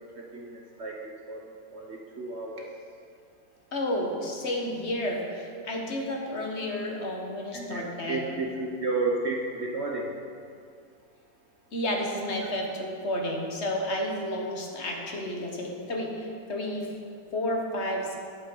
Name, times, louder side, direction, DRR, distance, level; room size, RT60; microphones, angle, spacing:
voice 1, 0.3-2.7 7.5-10.1, right 3 dB, 55° right, -1 dB, 0.8 m, -32 dB
voice 2, 3.7-8.3 11.7-16.9 17.3-18.2, left 1 dB, 45° left, 0 dB, 1.2 m, -31 dB
10.0 x 8.8 x 3.8 m, 2.2 s
omnidirectional pair, 2.0 m